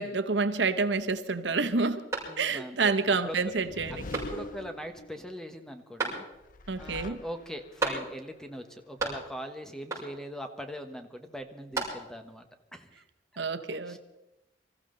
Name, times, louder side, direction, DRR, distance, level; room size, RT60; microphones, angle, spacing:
voice 1, 0.0-2.1 2.4-4.1 6.7-7.2 13.4-14.0, right 4 dB, 85° right, 10 dB, 0.9 m, -28 dB
sound 1, 2.1-2.8 3.2-3.3 4.1-4.7 6.0-6.6 7.8-8.4 8.7-9.5 9.9-10.4 11.4-12.3, right 3 dB, 15° right, 6.6 m, -35 dB
voice 2, 2.3-2.9 3.2-3.5 3.9-4.0 4.3-6.2 6.8-12.5 12.7-13.0 13.9-14.0, equal, 5° left, 6 dB, 1.3 m, -41 dB
sound 2, 3.3-5.3 6.3-7.8, left 2 dB, 50° left, 0.8 m, -43 dB
25.0 x 14.5 x 3.9 m, 0.96 s
head